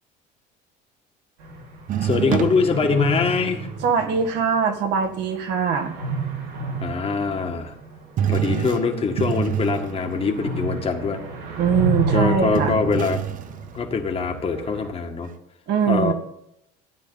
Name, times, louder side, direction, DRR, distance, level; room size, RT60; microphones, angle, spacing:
sound 1, 1.4-14.9, right 2 dB, 85° right, 5.8 m, -32 dB
sound 2, 1.9-4.4 5.0-5.1 8.2-13.8 15.2-15.3, right 9 dB, 45° right, 0.8 m, -28 dB
voice 1, 2.0-3.7 6.8-7.7 8.3-11.2 12.1-13.2 13.7-15.3 15.9-16.1, left 5 dB, 30° left, 4 dB, 2.0 m, -23 dB
voice 2, 3.8-6.0 11.6-12.7 15.7-16.1, right 7 dB, 65° right, 4 dB, 2.1 m, -22 dB
15.0 x 9.6 x 4.1 m, 0.76 s
cardioid pair, 120°, 19 cm